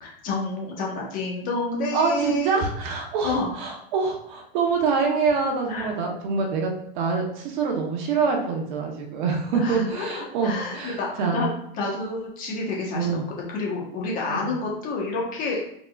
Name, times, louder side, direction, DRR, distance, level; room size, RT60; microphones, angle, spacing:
voice 1, 0.0-2.6 3.2-3.5 5.7-5.9 9.5-11.5 11.8-15.6, left 2 dB, 30° left, -2 dB, 1.3 m, -29 dB
voice 2, 1.9-11.4 12.9-13.2 14.3-14.5, right 5 dB, 50° right, 1 dB, 1.2 m, -25 dB
5.2 x 4.0 x 2.4 m, 0.72 s
supercardioid pair, 155°, 29 cm